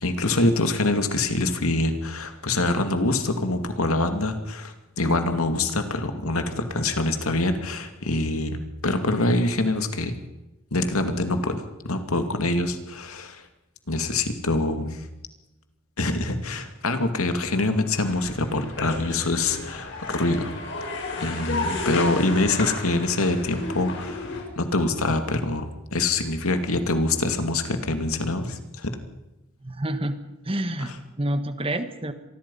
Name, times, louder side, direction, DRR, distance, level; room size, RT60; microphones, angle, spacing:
voice 1, 0.0-8.6 8.8-10.1 10.7-13.4 13.9-15.1 16.0-20.5 21.2-28.9 30.8-30.9, left 2 dB, 85° left, 7 dB, 2.5 m, -25 dB
sound 1, 17.9-24.4, left 3 dB, 55° left, 6.2 m, -32 dB
voice 2, 29.6-30.1 30.4-32.1, right 1 dB, 25° right, 9 dB, 1.6 m, -28 dB
25.5 x 20.0 x 5.6 m, 0.99 s
head